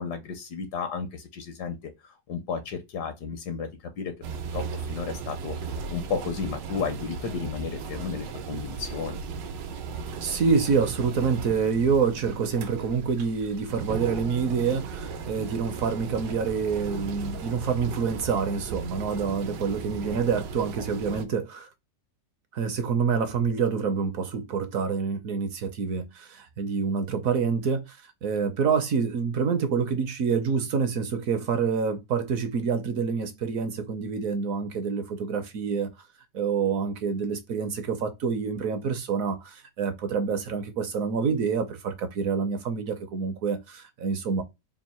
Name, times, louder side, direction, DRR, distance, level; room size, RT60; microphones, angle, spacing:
voice 1, 0.0-3.7 4.0-4.1 4.5-5.6 5.9-9.2, left 5 dB, 70° left, 1.2 m, -33 dB
sound 1, 4.2-21.2, right 5 dB, 85° right, 1.3 m, -36 dB
voice 2, 10.2-21.7 22.5-35.9 36.3-44.4, right 5 dB, 65° right, 0.9 m, -27 dB
3.5 x 2.5 x 4.2 m
omnidirectional pair, 1.9 m